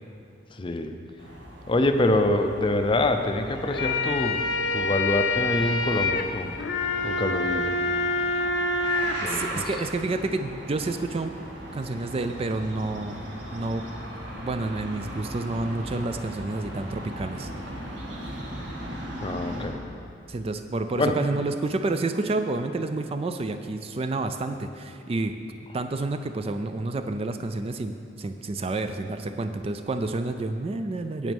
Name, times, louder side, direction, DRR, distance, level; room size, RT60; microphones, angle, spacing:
voice 1, 0.5-1.0 1.7-6.6 7.0-7.8 9.2-9.6 19.2-19.8 21.0-21.2, left 2 dB, 30° left, 6 dB, 0.5 m, -25 dB
sound 1, 1.2-19.7, equal, 80° right, 1.6 m, -39 dB
sound 2, 3.6-9.1, left 3 dB, 85° left, 0.7 m, -26 dB
voice 2, 9.3-11.3 11.7-13.2 13.5-13.8 14.4-17.5 20.3-25.4 25.7-31.3, right 2 dB, 30° right, 8 dB, 0.4 m, -29 dB
9.1 x 7.9 x 5.3 m, 2.6 s
head